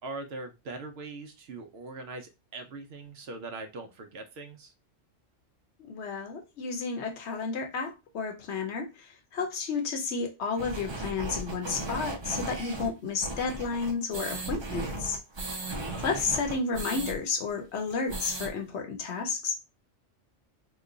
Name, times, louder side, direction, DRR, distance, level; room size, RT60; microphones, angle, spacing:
voice 1, 0.0-4.7 15.9-16.1, right 3 dB, 65° right, 0.8 m, -41 dB
voice 2, 5.9-15.2 16.0-19.6, left 4 dB, 70° left, 1.0 m, -32 dB
sound 1, 10.6-17.2 17.5-17.6 17.9-18.5, right 2 dB, 35° right, 0.4 m, -36 dB
3.0 x 2.2 x 3.7 m
omnidirectional pair, 1.2 m